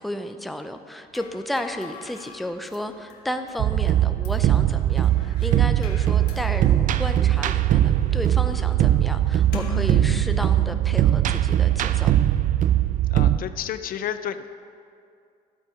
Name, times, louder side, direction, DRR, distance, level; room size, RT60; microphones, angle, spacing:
voice 1, 0.0-12.1, left 1 dB, ahead, 7 dB, 0.5 m, -33 dB
sound 1, 1.1-12.0, left 7 dB, 75° left, 1.4 m, -42 dB
sound 2, 3.6-13.4, right 12 dB, 50° right, 0.4 m, -20 dB
sound 3, 5.1-10.7, left 1 dB, 20° left, 1.5 m, -43 dB
voice 2, 13.1-14.5, left 9 dB, 60° left, 11 dB, 0.5 m, -31 dB
12.0 x 8.4 x 4.9 m, 2.3 s
cardioid pair, 110°, 17 cm